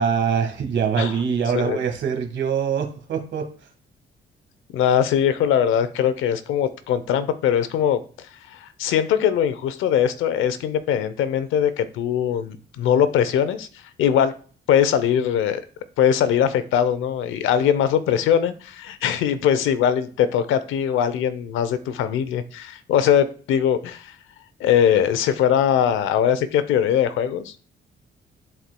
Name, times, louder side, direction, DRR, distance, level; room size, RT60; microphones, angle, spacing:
voice 1, 0.0-3.5, right 7 dB, 65° right, 4 dB, 1.6 m, -23 dB
voice 2, 4.7-14.3 14.7-15.6 16.0-24.2 24.6-27.6, left 9 dB, 90° left, 12 dB, 0.7 m, -21 dB
11.5 x 4.4 x 2.2 m, 0.41 s
cardioid pair, 90°, 20 cm